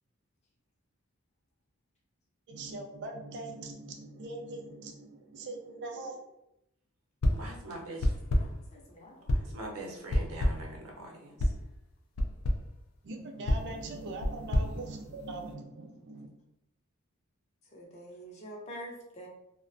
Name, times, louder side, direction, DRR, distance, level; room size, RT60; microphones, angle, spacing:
voice 1, 2.5-6.3 13.0-16.3, right 2 dB, 55° right, 2 dB, 0.4 m, -41 dB
sound 1, 7.2-7.6 8.0-8.7 9.3-9.6 10.1-10.8 11.4-11.7 12.2-12.7 13.5-15.5, left 1 dB, 85° left, 0.4 m, -29 dB
voice 2, 7.3-8.1 9.3-11.5, right 1 dB, 85° right, -1 dB, 0.7 m, -43 dB
voice 3, 8.3-9.4 17.7-19.3, equal, 30° left, -1 dB, 0.5 m, -46 dB
2.3 x 2.1 x 2.5 m, 0.83 s
head